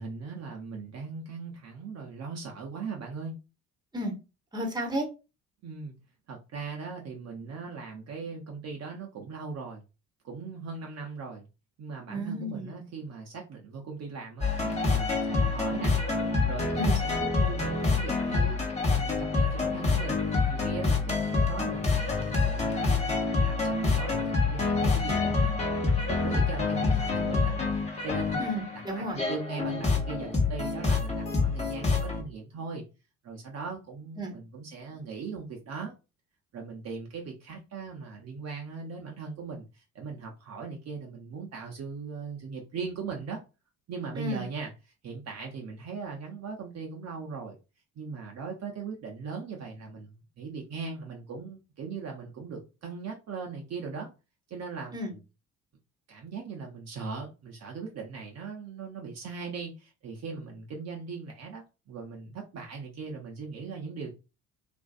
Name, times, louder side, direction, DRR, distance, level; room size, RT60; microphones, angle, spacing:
voice 1, 0.0-3.4 5.6-5.9 6.3-9.8 10.2-11.5 11.8-14.5 14.8-15.9 16.4-18.6 18.9-25.7 26.1-27.6 28.0-28.5 28.9-32.8 33.2-35.9 36.5-43.4 43.9-44.7 45.0-47.6 48.0-54.1 54.5-55.2 56.1-64.1, right 5 dB, 50° right, 0.7 m, -39 dB
voice 2, 4.5-5.1 12.1-12.8 16.7-17.0 28.4-29.2 34.2-34.3 44.1-44.4 54.9-55.1, equal, 10° right, 0.9 m, -33 dB
sound 1, 14.4-32.2, left 4 dB, 20° left, 1.0 m, -27 dB
2.5 x 2.4 x 2.3 m
hypercardioid pair, 60°, 35 cm